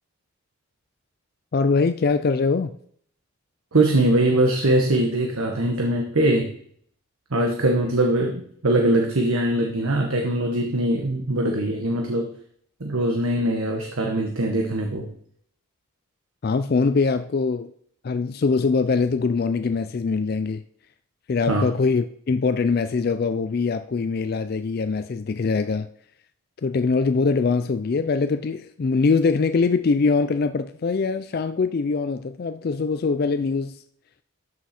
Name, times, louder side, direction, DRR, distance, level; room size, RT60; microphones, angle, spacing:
voice 1, 1.5-2.7 16.4-17.7 18.0-20.6 21.3-25.9 26.6-33.8, left 4 dB, 45° left, 0.3 m, -23 dB
voice 2, 3.7-6.5 7.3-12.3 12.8-15.1 21.5-21.7, right 1 dB, 80° right, 1.2 m, -22 dB
12.5 x 6.0 x 4.3 m
head